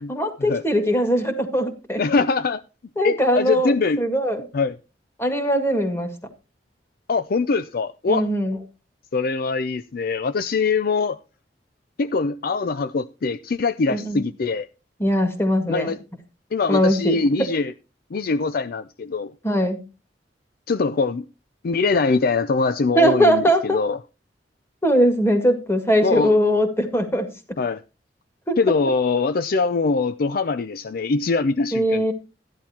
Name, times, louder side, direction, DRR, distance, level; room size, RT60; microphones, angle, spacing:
voice 1, 0.1-2.0 3.0-4.4 5.2-6.1 8.1-8.6 13.9-14.2 15.0-16.0 16.7-17.2 19.4-19.8 23.0-23.8 24.8-27.3 28.5-28.6 31.7-32.1, equal, 15° left, 1.9 m, -20 dB
voice 2, 2.0-2.6 3.0-4.0 4.5-4.8 7.1-8.3 9.1-11.2 12.0-14.7 15.7-16.0 16.5-17.7 18.1-19.3 20.7-21.2 21.6-24.0 26.0-26.3 27.6-27.8 28.6-32.1, left 4 dB, 55° left, 0.5 m, -23 dB
14.0 x 10.5 x 2.9 m
head